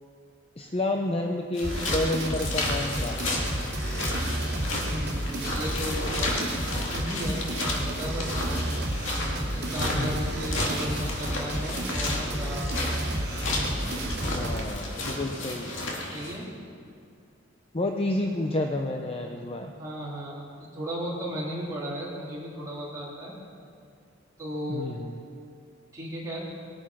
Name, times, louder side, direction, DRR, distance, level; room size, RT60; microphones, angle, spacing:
voice 1, 0.6-3.3 9.9-10.2 14.3-15.7 17.7-19.7 24.7-25.2, left 2 dB, 30° left, 3 dB, 0.6 m, -30 dB
sound 1, 1.5-16.4, left 1 dB, 70° left, 2.5 m, -32 dB
sound 2, 1.6-14.6, right 1 dB, 55° right, 2.6 m, -31 dB
voice 2, 4.8-6.3 6.9-8.7 9.5-12.7 16.1-16.5 19.8-23.4 24.4-24.9 25.9-26.5, equal, 15° right, -7 dB, 3.6 m, -35 dB
20.5 x 9.4 x 5.9 m, 2.4 s
head